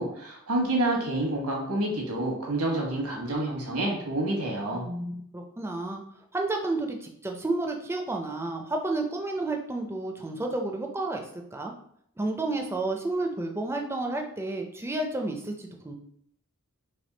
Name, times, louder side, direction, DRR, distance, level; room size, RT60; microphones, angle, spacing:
voice 1, 0.0-4.9, right 1 dB, 75° right, -1 dB, 1.3 m, -28 dB
voice 2, 4.7-6.0 6.3-11.2 11.5-11.7 12.2-15.9, right 2 dB, 10° right, 2 dB, 0.5 m, -31 dB
3.5 x 2.9 x 3.9 m, 0.68 s
head